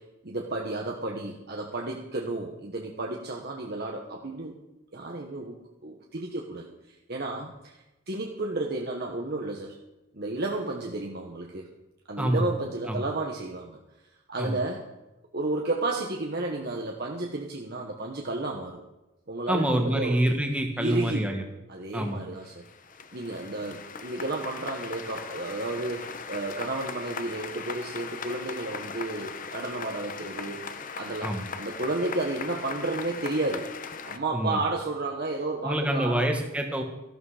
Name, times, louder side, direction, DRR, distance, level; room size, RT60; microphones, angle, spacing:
voice 1, 0.0-4.6 4.9-5.6 5.8-9.8 10.1-11.6 12.1-13.8 14.3-14.8 15.3-18.8 19.3-20.2 20.8-21.4 21.7-22.6 23.1-30.6 31.0-33.7 34.0-36.3, right 2 dB, 45° right, 0 dB, 1.2 m, -32 dB
voice 2, 19.5-21.4 21.9-22.2 31.2-31.4 34.3-34.6 35.6-36.8, right 1 dB, 5° right, 3 dB, 1.5 m, -26 dB
sound 1, 22.1-22.2 22.4-34.2, left 5 dB, 40° left, 0.8 m, -39 dB
14.0 x 11.5 x 5.0 m, 1.0 s
head